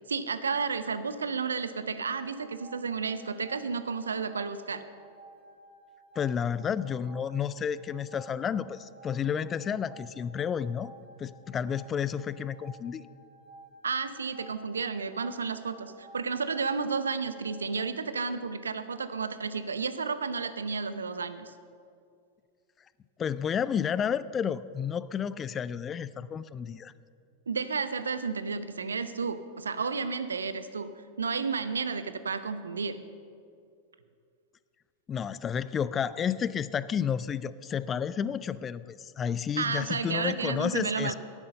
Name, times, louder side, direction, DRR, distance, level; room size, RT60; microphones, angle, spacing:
voice 1, 0.1-4.8 13.8-21.5 27.5-30.9 31.2-33.0 39.6-41.1, right 5 dB, 70° right, 13 dB, 0.6 m, -32 dB
sound 1, 2.0-17.9, right 2 dB, 45° right, 3.4 m, -54 dB
voice 2, 6.2-10.9 11.2-13.1 23.2-26.9 35.1-41.1, left 7 dB, 25° left, 17 dB, 0.3 m, -31 dB
11.0 x 10.5 x 6.5 m, 2.4 s
figure-of-eight pair, 90°, 0 cm